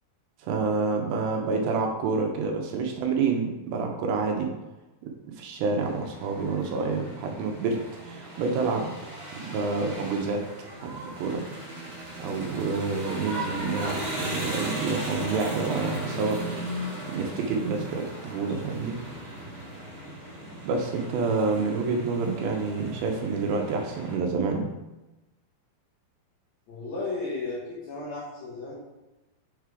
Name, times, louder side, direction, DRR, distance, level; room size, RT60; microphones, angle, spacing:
voice 1, 0.5-4.5 5.0-8.9 9.4-10.4 10.8-11.4 12.2-16.4 17.1-19.0 20.6-24.7, right 4 dB, 80° right, 2 dB, 2.5 m, -28 dB
sound 1, 5.8-24.2, right 1 dB, 45° right, 2.8 m, -37 dB
voice 2, 26.7-28.7, left 3 dB, 60° left, -7 dB, 2.1 m, -34 dB
6.5 x 3.7 x 4.7 m, 1.0 s
omnidirectional pair, 4.6 m